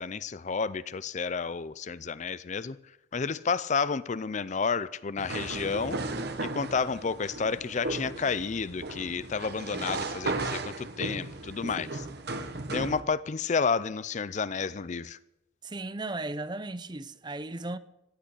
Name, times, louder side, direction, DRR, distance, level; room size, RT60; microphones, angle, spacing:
voice 1, 0.0-2.8 3.1-6.0 6.4-12.1 12.7-15.2, left 5 dB, 40° left, 0.5 m, -31 dB
sound 1, 5.2-13.0, right 2 dB, 55° right, 1.4 m, -35 dB
voice 2, 15.6-17.8, right 2 dB, 20° right, 0.6 m, -36 dB
15.0 x 9.0 x 8.6 m
head